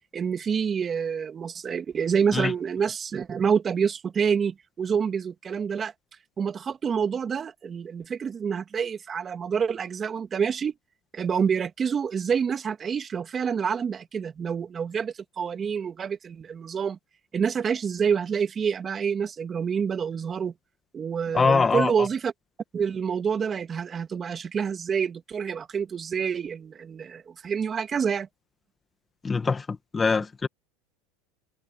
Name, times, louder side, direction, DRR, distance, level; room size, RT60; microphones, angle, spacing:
voice 1, 0.1-5.9 6.4-10.7 11.1-17.0 17.3-20.5 20.9-22.3 22.7-28.3, right 7 dB, 30° right, 2.7 m, -27 dB
voice 2, 21.3-22.1 29.2-30.5, left 4 dB, 20° left, 2.1 m, -23 dB
supercardioid pair, 105°, 0 cm